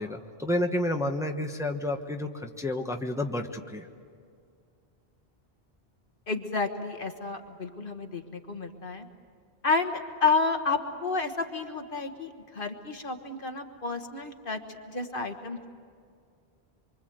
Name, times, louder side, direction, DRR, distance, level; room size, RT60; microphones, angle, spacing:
voice 1, 0.0-3.9, left 1 dB, 5° right, 3 dB, 1.2 m, -30 dB
voice 2, 6.3-9.1 9.6-15.7, left 4 dB, 55° left, 6 dB, 1.7 m, -30 dB
26.0 x 24.5 x 7.9 m, 2.2 s
omnidirectional pair, 1.0 m